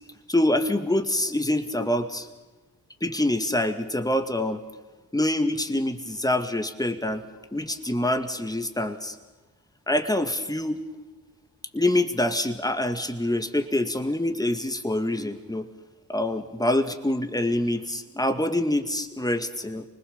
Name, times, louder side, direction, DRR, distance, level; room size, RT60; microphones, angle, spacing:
voice 1, 0.3-2.3 3.0-4.6 5.1-7.2 7.5-9.2 9.9-10.8 11.7-15.7 16.1-19.8, left 1 dB, 10° left, 7 dB, 2.2 m, -25 dB
25.0 x 20.0 x 7.2 m, 1.2 s
supercardioid pair, 50°, 40 cm